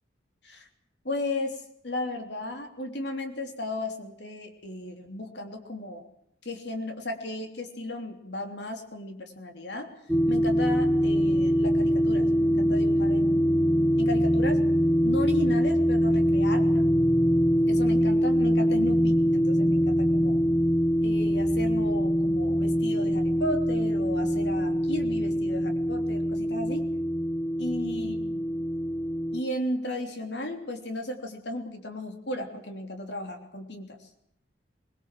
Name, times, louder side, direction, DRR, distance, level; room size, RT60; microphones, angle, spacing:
voice 1, 1.0-6.0 6.4-9.9 10.3-13.5 14.0-14.6 15.0-16.8 17.7-20.4 21.0-26.9 27.6-28.4 29.3-34.0, left 1 dB, 70° left, 5 dB, 3.3 m, -35 dB
sound 1, 10.1-29.4, equal, ahead, 1.0 m, -24 dB
22.5 x 22.0 x 7.6 m, 0.73 s
head